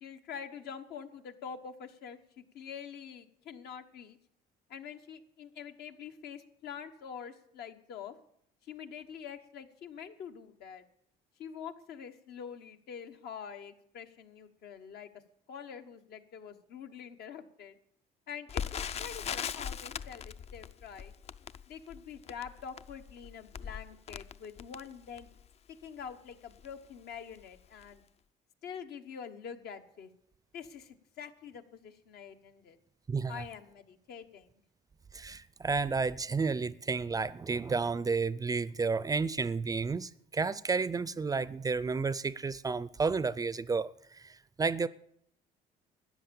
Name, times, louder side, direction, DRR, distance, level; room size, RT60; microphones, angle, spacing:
voice 1, 0.0-4.2 4.7-8.1 8.6-10.8 11.4-15.2 15.5-17.8 18.3-21.1 21.7-25.3 25.8-28.0 28.6-30.1 30.5-32.8 33.3-34.5, left 7 dB, 70° left, 1.2 m, -45 dB
Crackle, 18.5-25.5 26.1-26.2 26.5-26.7 27.3-27.6 27.8-27.9, left 8 dB, 40° left, 0.4 m, -40 dB
voice 2, 33.1-33.4 35.1-44.9, right 4 dB, 20° right, 0.4 m, -31 dB
13.5 x 9.8 x 7.0 m
cardioid pair, 110°, 17 cm